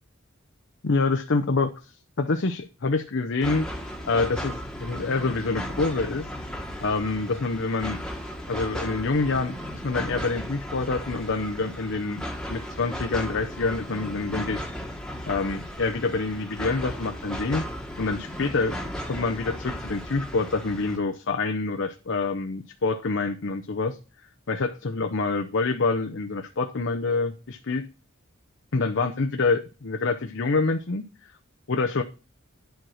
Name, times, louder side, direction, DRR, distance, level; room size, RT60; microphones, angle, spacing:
voice 1, 0.8-3.7 4.0-6.3 6.8-8.0 8.5-9.6 9.8-14.7 15.3-17.6 18.0-18.8 19.0-24.0 24.5-27.9 28.7-31.3 31.7-32.0, left 3 dB, 60° left, 5 dB, 0.7 m, -26 dB
sound 1, 3.4-21.0, equal, 5° left, 1.4 m, -35 dB
10.5 x 4.6 x 6.3 m, 0.34 s
head